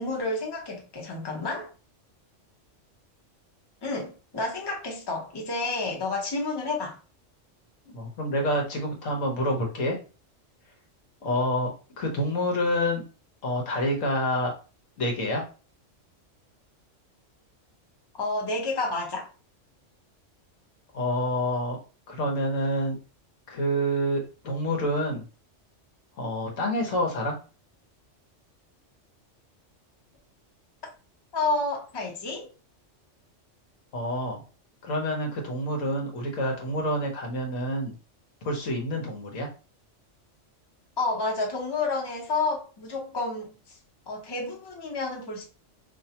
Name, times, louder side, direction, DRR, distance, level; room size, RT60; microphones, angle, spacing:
voice 1, 0.0-1.7 3.8-7.0 18.2-19.3 31.3-32.5 41.0-43.8 44.1-45.4, left 3 dB, 20° left, 0.8 m, -30 dB
voice 2, 7.9-10.0 11.2-13.0 13.4-14.5 15.0-15.4 20.9-21.8 22.1-23.0 23.5-25.2 26.2-27.3 33.9-34.4 34.8-37.9 38.4-39.5, equal, 85° left, 1.4 m, -27 dB
4.5 x 2.7 x 2.8 m
omnidirectional pair, 1.3 m